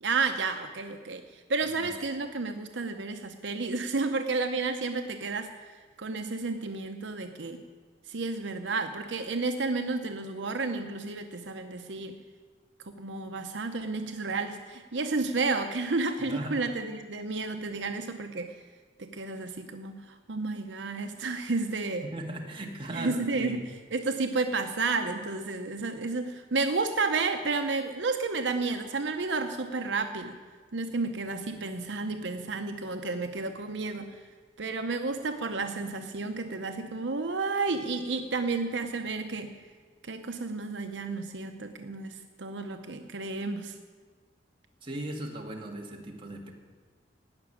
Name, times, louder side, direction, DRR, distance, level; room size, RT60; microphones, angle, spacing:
voice 1, 0.0-5.5 6.0-7.6 8.1-12.1 13.0-18.5 19.0-22.1 22.9-30.3 30.7-34.2 34.6-39.5 40.0-43.7, right 3 dB, 75° right, 5 dB, 0.8 m, -31 dB
voice 2, 22.0-23.6 44.8-46.5, right 1 dB, 30° right, 0 dB, 1.8 m, -37 dB
17.0 x 6.1 x 9.9 m, 1.5 s
head